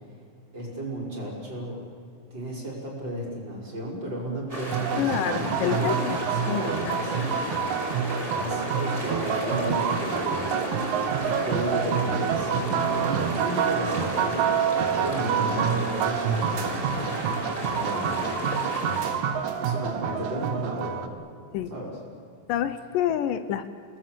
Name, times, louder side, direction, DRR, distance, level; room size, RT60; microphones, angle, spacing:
voice 1, 0.5-1.9 2.3-7.4 8.3-17.1 17.7-18.4 19.6-21.2 21.7-22.0, right 1 dB, 30° right, -2 dB, 5.7 m, -34 dB
sound 1, 4.5-19.1, equal, 10° right, 5.5 m, -34 dB
sound 2, 4.7-21.1, right 7 dB, 65° right, 2.4 m, -27 dB
voice 2, 5.0-6.2 6.5-7.0 21.5-21.7 22.5-23.7, left 10 dB, 80° left, 12 dB, 2.3 m, -28 dB
29.0 x 19.5 x 7.5 m, 2.6 s
omnidirectional pair, 4.0 m